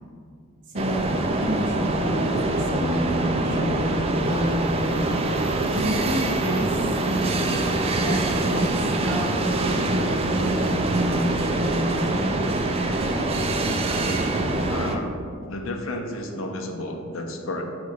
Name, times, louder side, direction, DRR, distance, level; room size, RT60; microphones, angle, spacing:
voice 1, 0.7-5.0 5.7-7.6 8.0-12.4, equal, 55° right, -1 dB, 1.0 m, -29 dB
sound 1, 0.8-15.0, right 2 dB, 25° right, 0.3 m, -24 dB
Piano, 2.7-6.4, left 1 dB, ahead, 0.7 m, -35 dB
voice 2, 14.7-15.2 15.5-17.6, left 1 dB, 65° left, 4 dB, 0.6 m, -32 dB
6.0 x 3.2 x 4.9 m, 2.3 s
head